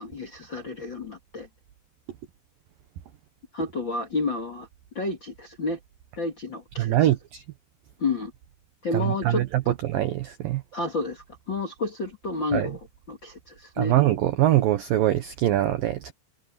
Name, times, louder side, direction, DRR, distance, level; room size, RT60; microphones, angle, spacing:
voice 1, 0.0-1.5 3.5-4.7 4.9-5.8 6.2-6.9 8.0-8.3 8.8-9.7 10.7-12.8 13.1-14.0, left 3 dB, 45° left, 1.5 m, -30 dB
voice 2, 6.8-7.4 8.9-10.6 12.5-12.7 13.8-16.1, right 14 dB, 90° right, 2.0 m, -23 dB
omnidirectional pair, 5.5 m